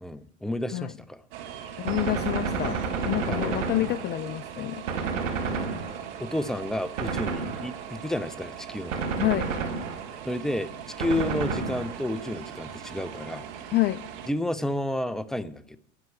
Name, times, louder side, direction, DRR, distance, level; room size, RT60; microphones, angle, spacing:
voice 1, 0.0-1.2 3.3-3.6 5.5-5.7 6.2-9.1 10.2-13.5 14.3-15.8, left 1 dB, ahead, 15 dB, 0.7 m, -31 dB
sound 1, 1.3-14.3, right 9 dB, 65° right, 1.6 m, -41 dB
voice 2, 1.8-2.8 3.0-4.8 9.2-9.5 13.7-14.0, left 17 dB, 30° left, 17 dB, 0.4 m, -27 dB
Gunshot gunfire, 1.9-4.4 4.9-6.3 7.0-8.0 8.9-10.3 11.0-12.2, right 4 dB, 85° right, 1.6 m, -30 dB
10.5 x 7.6 x 8.6 m, 0.70 s
hypercardioid pair, 85°, 37 cm